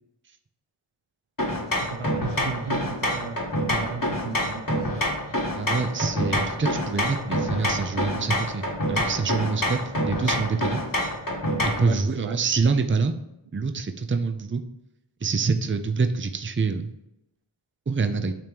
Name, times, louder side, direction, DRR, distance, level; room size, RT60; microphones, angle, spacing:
sound 1, 1.4-11.9, equal, 40° left, 1.6 m, -27 dB
voice 1, 1.8-3.4 3.7-4.9 11.8-12.4, right 5 dB, 70° right, 8 dB, 0.7 m, -35 dB
voice 2, 5.6-9.8 10.0-10.8 11.8-13.1 13.5-14.6 15.2-16.9 17.9-18.3, right 4 dB, 25° right, 7 dB, 0.6 m, -26 dB
8.9 x 3.1 x 5.2 m, 0.85 s
wide cardioid pair, 70°, 50 cm